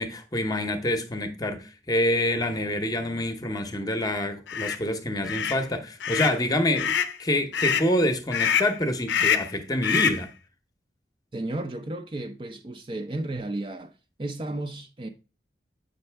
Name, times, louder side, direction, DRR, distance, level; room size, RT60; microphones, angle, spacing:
voice 1, 0.0-6.9 7.2-10.3, left 1 dB, 20° left, 0.8 m, -26 dB
sound 1, 4.5-4.8 5.2-5.6 6.0-6.4 6.8-7.2 7.5-7.9 8.3-8.7 9.1-9.5 9.8-10.2, left 8 dB, 80° left, 0.6 m, -25 dB
voice 2, 11.3-13.9 14.2-15.1, right 2 dB, 30° right, 0.5 m, -33 dB
7.9 x 5.3 x 3.3 m
head